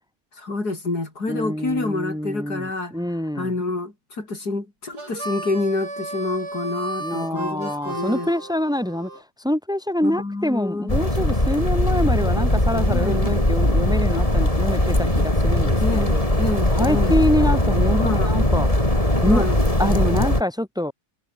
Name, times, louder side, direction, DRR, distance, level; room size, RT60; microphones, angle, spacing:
voice 1, 0.4-2.9 3.4-8.3 10.0-11.0 12.9-13.2 15.8-17.2 18.0-18.3 19.2-19.6, left 3 dB, 75° left, 5.6 m, -27 dB
voice 2, 1.3-3.5 7.0-16.2 16.7-18.8 19.2-19.4 19.8-20.9, left 1 dB, ahead, 3.1 m, -25 dB
Harmonica, 4.9-9.2, right 2 dB, 90° right, 7.0 m, -34 dB
sound 1, 10.9-20.4, left 1 dB, 20° left, 5.4 m, -20 dB
omnidirectional pair, 1.7 m